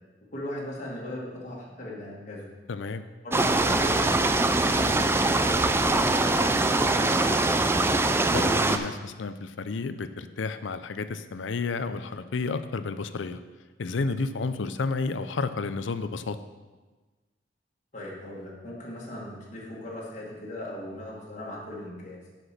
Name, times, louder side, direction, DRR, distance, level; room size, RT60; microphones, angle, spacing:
voice 1, 0.2-2.5 3.2-7.8 17.9-22.2, left 1 dB, 40° left, -5 dB, 1.9 m, -38 dB
voice 2, 2.7-3.0 8.3-13.4 13.8-16.4, left 4 dB, 90° left, 11 dB, 0.5 m, -31 dB
sound 1, 3.3-8.8, right 2 dB, 15° right, 0.4 m, -23 dB
8.0 x 6.0 x 5.9 m, 1.3 s
head